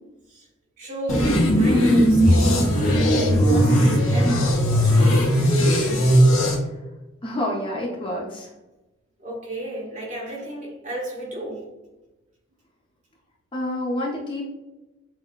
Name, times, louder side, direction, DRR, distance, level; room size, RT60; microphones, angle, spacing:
voice 1, 0.8-5.4 9.2-11.7, right 1 dB, 35° right, 1.2 m, -34 dB
sound 1, 1.1-6.6, equal, 80° left, 1.0 m, -18 dB
voice 2, 7.2-8.5 13.5-14.4, left 1 dB, 25° left, 0.5 m, -28 dB
6.2 x 2.1 x 2.2 m
head